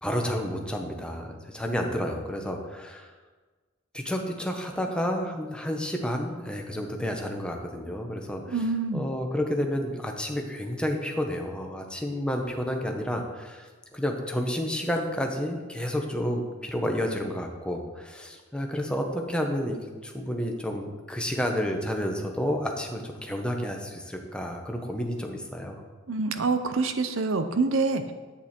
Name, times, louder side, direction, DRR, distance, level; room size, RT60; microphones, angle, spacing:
voice 1, 0.0-3.1 3.9-8.6 8.9-13.7 13.9-25.8, equal, 5° left, 2 dB, 1.1 m, -30 dB
voice 2, 8.5-9.0 26.1-28.1, right 3 dB, 70° right, 9 dB, 0.7 m, -26 dB
10.5 x 8.5 x 4.5 m, 1.3 s
head